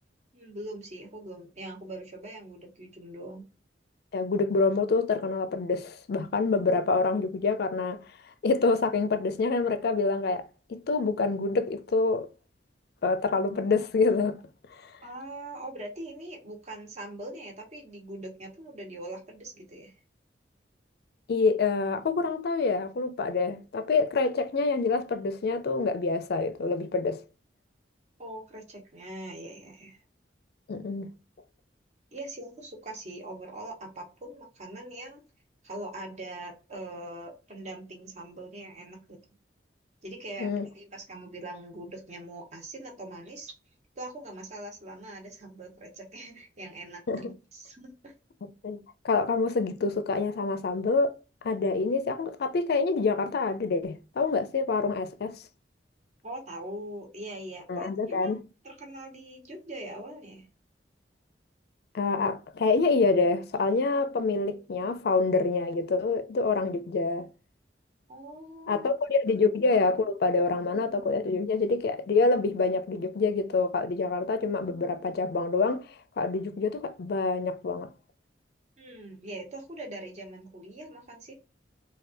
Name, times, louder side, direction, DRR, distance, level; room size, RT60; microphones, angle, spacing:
voice 1, 0.3-3.5 15.0-20.0 28.2-30.0 32.1-35.2 35.6-39.2 40.0-43.5 44.0-48.1 56.2-58.4 58.6-60.5 68.1-68.9 70.5-70.7 78.8-81.3, right 1 dB, 40° right, 0.9 m, -42 dB
voice 2, 4.1-8.0 8.4-12.3 13.0-14.4 14.8-14.9 21.3-27.2 30.7-31.1 40.4-40.7 47.1-47.4 48.4-55.4 57.7-58.4 61.9-67.3 68.7-75.8 76.2-77.9, left 4 dB, 60° left, 0.4 m, -26 dB
3.3 x 2.3 x 2.5 m
head